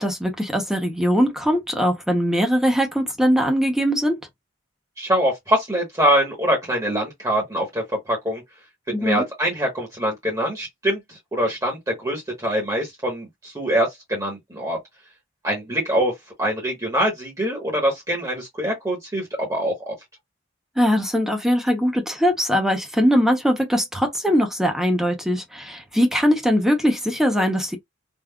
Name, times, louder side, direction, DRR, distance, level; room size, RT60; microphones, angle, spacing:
voice 1, 0.0-4.2 8.9-9.3 20.8-27.8, equal, ahead, 0.6 m, -21 dB
voice 2, 5.0-8.4 9.0-14.8 15.4-16.1 16.4-19.9, equal, 15° right, 1.1 m, -24 dB
3.6 x 2.3 x 2.2 m
head